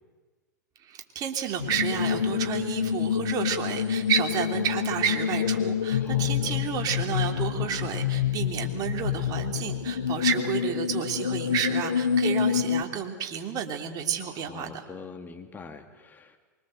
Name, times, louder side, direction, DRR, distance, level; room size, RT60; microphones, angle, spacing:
voice 1, 0.8-14.8, right 8 dB, 40° right, 4 dB, 3.2 m, -30 dB
sound 1, 1.6-12.8, left 8 dB, 80° left, 1.2 m, -27 dB
voice 2, 6.0-6.6 14.2-16.4, left 4 dB, 20° left, 5 dB, 2.5 m, -44 dB
24.5 x 23.5 x 7.9 m, 1.3 s
hypercardioid pair, 100°, 10 cm